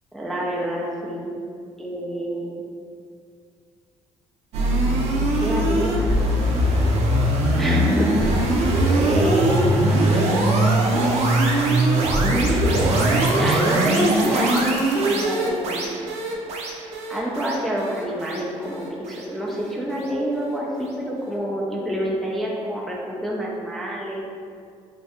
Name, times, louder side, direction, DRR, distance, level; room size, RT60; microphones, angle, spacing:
voice 1, 0.1-1.3 1.8-2.6 5.4-6.1 7.5-8.6 9.0-10.2 12.1-13.1 13.4-15.9 17.1-24.2, equal, ahead, -5 dB, 0.4 m, -27 dB
sound 1, 4.5-19.7, right 1 dB, 70° right, 0.5 m, -21 dB
3.1 x 2.3 x 2.8 m, 2.2 s
cardioid pair, 100°, 11 cm